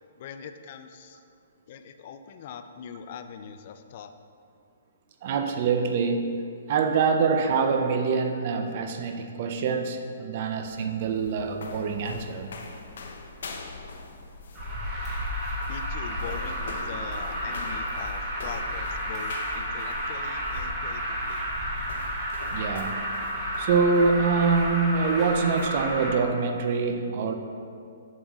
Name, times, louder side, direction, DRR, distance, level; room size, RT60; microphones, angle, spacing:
voice 1, 0.2-1.2 1.7-4.1 15.7-21.4, left 7 dB, 40° left, 9 dB, 0.4 m, -42 dB
voice 2, 5.2-12.5 22.5-23.1 23.6-27.3, right 5 dB, 40° right, 5 dB, 0.5 m, -25 dB
sound 1, 10.5-25.8, left 3 dB, 70° left, 0.7 m, -44 dB
Alarm, 14.5-26.1, equal, 20° right, 1.5 m, -31 dB
7.9 x 7.3 x 2.4 m, 2.4 s
hypercardioid pair, 160°, 0 cm